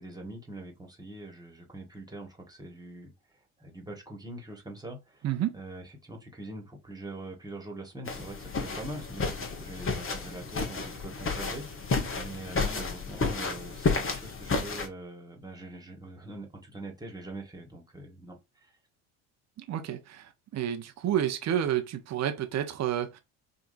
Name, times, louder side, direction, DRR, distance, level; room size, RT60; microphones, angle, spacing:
voice 1, 0.0-5.3 5.5-18.8, right 1 dB, 10° right, 1.7 m, -43 dB
voice 2, 5.2-5.6 19.6-23.2, right 10 dB, 35° right, 0.8 m, -30 dB
sound 1, 8.1-14.9, left 4 dB, 30° left, 1.3 m, -31 dB
5.1 x 2.7 x 2.6 m
hypercardioid pair, 65°, 44 cm